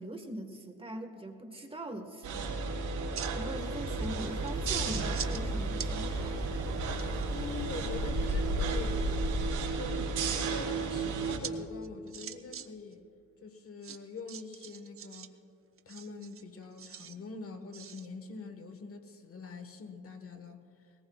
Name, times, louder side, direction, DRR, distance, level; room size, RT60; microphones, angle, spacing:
voice 1, 0.0-2.5 3.4-6.6, right 1 dB, 20° right, 5 dB, 1.4 m, -42 dB
sound 1, 2.2-2.4 2.9-3.6 3.9-4.0 4.5-5.4 5.7-5.9 6.4-7.2 9.4-9.9 11.4-11.5 11.8-12.7 12.9-13.0 13.8-15.3 15.8-17.1 17.7-18.1, right 7 dB, 45° right, 0.8 m, -43 dB
sound 2, 2.2-11.4, right 4 dB, 75° right, 3.3 m, -34 dB
sound 3, 3.9-9.5, left 1 dB, 10° left, 2.6 m, -37 dB
voice 2, 7.3-9.0 9.8-13.0 13.4-15.3 15.9-20.6, left 4 dB, 50° left, 7 dB, 1.3 m, -44 dB
21.5 x 18.5 x 2.3 m, 2.7 s
cardioid pair, 90°, 30 cm